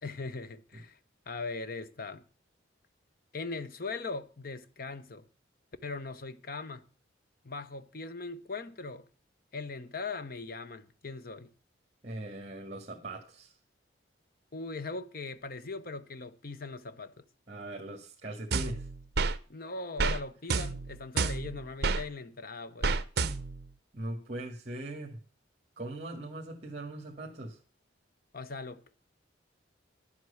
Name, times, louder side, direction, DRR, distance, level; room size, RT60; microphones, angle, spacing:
voice 1, 0.0-1.0 1.3-2.2 3.3-5.3 5.8-6.9 7.4-9.0 9.5-11.5 14.5-17.2 19.5-22.9 28.3-29.0, left 3 dB, 50° left, 0.8 m, -40 dB
voice 2, 12.0-13.5 17.5-18.9 23.9-25.2 25.8-27.6, right 1 dB, 30° right, 2.0 m, -40 dB
sound 1, 18.5-19.4 20.0-20.2 20.5-22.0 22.8-23.6, right 4 dB, 55° right, 0.7 m, -29 dB
11.0 x 7.9 x 7.0 m
head